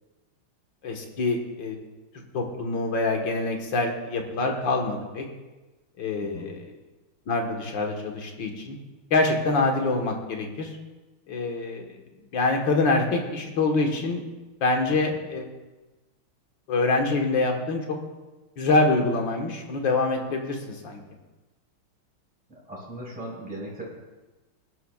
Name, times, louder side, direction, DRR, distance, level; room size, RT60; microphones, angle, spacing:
voice 1, 0.8-1.8 2.3-5.3 6.0-6.7 7.3-8.8 9.1-10.7 11.3-11.9 12.3-14.2 14.6-15.5 16.7-17.8 18.6-21.0, left 3 dB, 60° left, 2 dB, 2.1 m, -25 dB
voice 2, 6.1-6.5 15.1-15.2 22.5-23.8, right 1 dB, 5° right, -6 dB, 4.0 m, -38 dB
19.5 x 11.5 x 2.4 m, 1.1 s
omnidirectional pair, 2.3 m